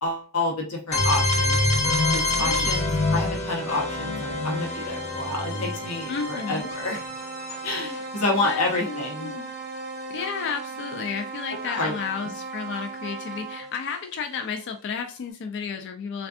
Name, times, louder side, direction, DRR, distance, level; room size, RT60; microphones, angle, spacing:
voice 1, 0.0-1.6 2.1-7.0 7.6-9.3 11.6-11.9, left 2 dB, 85° left, -1 dB, 0.8 m, -29 dB
sound 1, 0.9-10.6, left 2 dB, 30° left, 0.7 m, -27 dB
voice 2, 2.4-2.8 6.1-6.7 8.4-9.5 10.1-16.3, left 6 dB, 55° left, 5 dB, 0.3 m, -32 dB
sound 2, 3.6-13.8, right 4 dB, 40° right, 0.3 m, -38 dB
3.4 x 2.3 x 2.4 m, 0.37 s
head